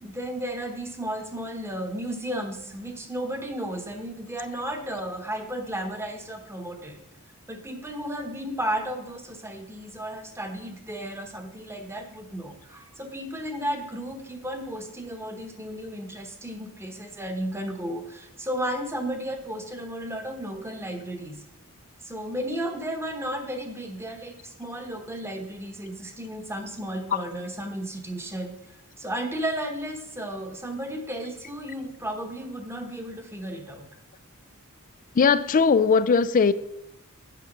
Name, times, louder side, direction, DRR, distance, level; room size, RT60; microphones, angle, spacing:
voice 1, 0.0-7.0 7.5-21.4 22.0-28.6 29.0-33.8, right 1 dB, 10° right, 1.1 m, -34 dB
voice 2, 35.2-36.5, left 5 dB, 35° left, 0.4 m, -19 dB
9.2 x 6.7 x 5.3 m
head